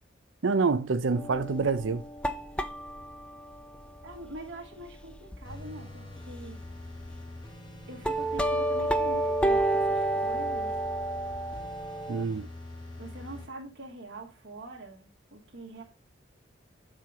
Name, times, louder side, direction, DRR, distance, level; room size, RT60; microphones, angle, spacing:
voice 1, 0.4-2.0 12.1-12.5, right 4 dB, 80° right, 0.6 m, -26 dB
sound 1, 1.2-5.7 6.1-6.2 6.6-7.2 7.7-12.2, right 1 dB, 5° left, 0.3 m, -30 dB
voice 2, 4.0-6.6 7.9-10.8 13.0-15.8, right 2 dB, 65° right, 1.3 m, -44 dB
sound 2, 5.4-13.5, left 2 dB, 25° left, 1.2 m, -44 dB
7.5 x 4.5 x 3.5 m
head